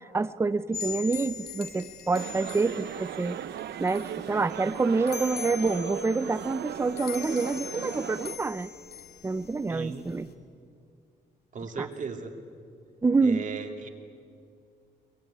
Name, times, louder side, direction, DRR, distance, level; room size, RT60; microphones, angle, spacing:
voice 1, 0.1-3.4 3.8-8.7 9.2-10.3 11.8-11.9 13.0-13.5, right 3 dB, 15° right, 15 dB, 0.6 m, -27 dB
sound 1, 0.7-10.3, left 7 dB, 60° left, 2.5 m, -42 dB
sound 2, 2.1-8.4, right 11 dB, 70° right, 0.6 m, -38 dB
voice 2, 9.7-10.1 11.5-12.3 13.2-13.9, right 5 dB, 45° right, 4 dB, 2.6 m, -36 dB
23.0 x 21.5 x 10.0 m, 2.4 s
cardioid pair, 140°, 18 cm